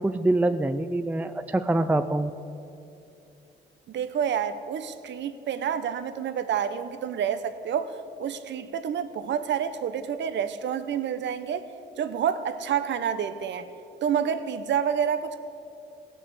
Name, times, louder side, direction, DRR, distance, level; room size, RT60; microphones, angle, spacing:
voice 1, 0.0-2.3, right 2 dB, 10° right, 9 dB, 0.4 m, -25 dB
voice 2, 3.9-11.7 12.0-13.7 14.0-15.4, right 8 dB, 65° right, 11 dB, 0.8 m, -28 dB
16.5 x 6.3 x 8.0 m, 2.7 s
cardioid pair, 90°, 20 cm